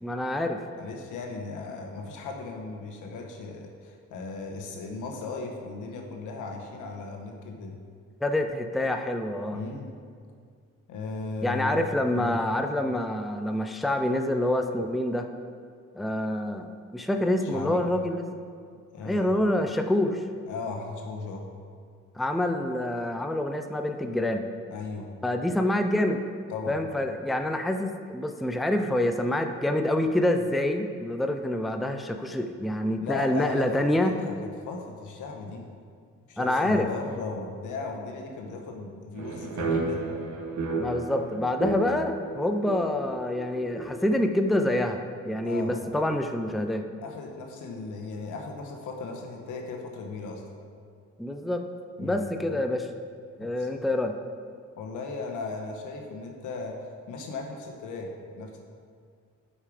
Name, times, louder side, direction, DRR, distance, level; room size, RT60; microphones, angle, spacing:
voice 1, 0.0-0.6 8.2-9.6 11.4-15.3 15.9-18.3 19.0-20.2 22.2-24.5 25.2-26.2 26.7-34.1 36.4-36.9 40.8-46.9 51.2-51.6 52.0-52.9 53.4-54.1, left 1 dB, ahead, 6 dB, 0.5 m, -27 dB
voice 2, 0.8-7.8 9.5-9.9 10.9-11.8 12.1-12.4 17.4-17.8 18.9-19.3 20.5-21.5 24.7-25.1 26.5-26.8 33.0-34.3 34.7-35.7 36.3-40.0 45.4-45.8 47.0-50.4 52.0-52.2 53.4-53.7 54.8-56.8 57.1-58.6, left 3 dB, 85° left, 2 dB, 1.3 m, -36 dB
sound 1, 39.2-44.6, right 3 dB, 65° right, 1.4 m, -33 dB
8.4 x 5.6 x 4.9 m, 2.2 s
cardioid pair, 90°, 30 cm